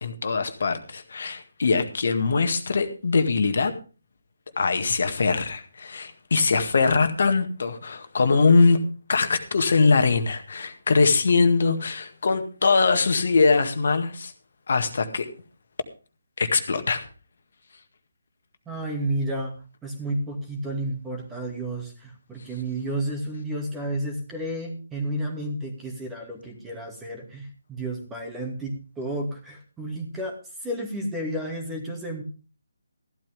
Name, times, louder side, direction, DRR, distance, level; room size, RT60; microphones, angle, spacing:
voice 1, 0.0-3.7 4.6-8.8 9.1-14.3 14.7-15.3 16.4-17.1, left 4 dB, 55° left, 1.8 m, -22 dB
voice 2, 18.7-32.2, right 1 dB, 10° right, 2.3 m, -31 dB
14.5 x 12.0 x 3.5 m
figure-of-eight pair, 145°, 0 cm